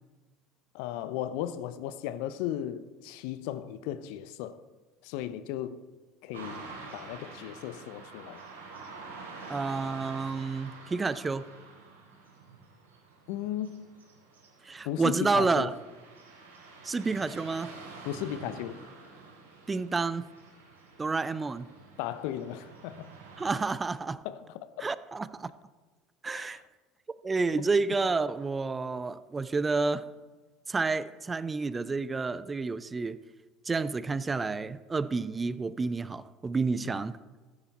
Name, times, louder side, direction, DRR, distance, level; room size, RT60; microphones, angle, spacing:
voice 1, 0.7-4.6 5.0-5.8 6.2-6.7 6.9-8.4 13.3-13.9 14.8-15.7 18.0-18.8 22.0-23.1 24.2-24.9 26.3-26.6 27.6-27.7 36.8-37.0, left 11 dB, 65° left, 0.6 m, -36 dB
Car passing by / Traffic noise roadway noise, 6.3-23.6, right 4 dB, 80° right, 3.9 m, -48 dB
voice 2, 9.5-11.5 14.6-15.7 16.8-17.7 19.7-20.3 21.0-21.7 23.4-24.2 24.8-25.5 26.2-26.6 27.2-30.0 30.7-33.2 33.7-37.2, right 4 dB, 20° right, 0.5 m, -30 dB
14.5 x 9.2 x 4.1 m
figure-of-eight pair, 65°, 0 cm